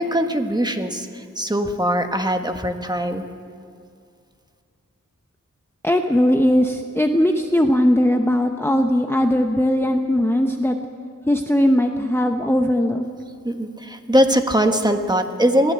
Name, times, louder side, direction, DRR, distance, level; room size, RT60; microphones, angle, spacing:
voice 1, 0.0-3.2 13.4-15.7, equal, 15° right, 5 dB, 1.4 m, -21 dB
voice 2, 5.8-10.8 11.3-13.0, left 1 dB, 10° left, 4 dB, 0.9 m, -19 dB
22.0 x 15.5 x 8.0 m, 2.2 s
wide cardioid pair, 90°, 31 cm